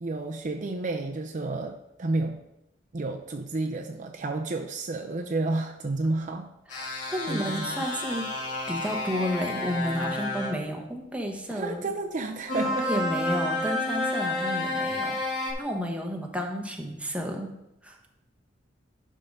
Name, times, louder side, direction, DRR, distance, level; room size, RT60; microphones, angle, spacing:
voice 1, 0.0-2.4 2.9-6.5 7.3-7.8 11.5-13.0, right 2 dB, 40° right, 4 dB, 0.5 m, -31 dB
sound 1, 6.7-10.5 12.5-15.5, left 2 dB, 40° left, 2.0 m, -30 dB
voice 2, 6.7-8.3 8.7-11.8 12.6-15.2 15.6-17.5 17.8-18.0, equal, 5° right, 2 dB, 0.9 m, -32 dB
11.0 x 3.7 x 5.3 m, 0.89 s
head